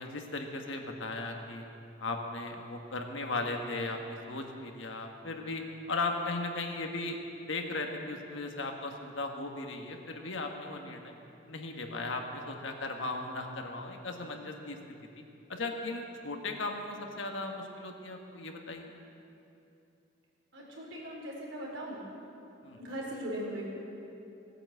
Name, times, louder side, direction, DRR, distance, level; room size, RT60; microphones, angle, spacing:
voice 1, 0.0-1.7 2.0-7.2 7.5-11.1 11.5-14.8 15.5-18.9 22.6-22.8, left 2 dB, 75° left, 3 dB, 1.5 m, -37 dB
voice 2, 20.5-22.0 22.8-23.7, equal, 80° right, -3 dB, 4.1 m, -39 dB
16.5 x 8.9 x 7.8 m, 2.8 s
head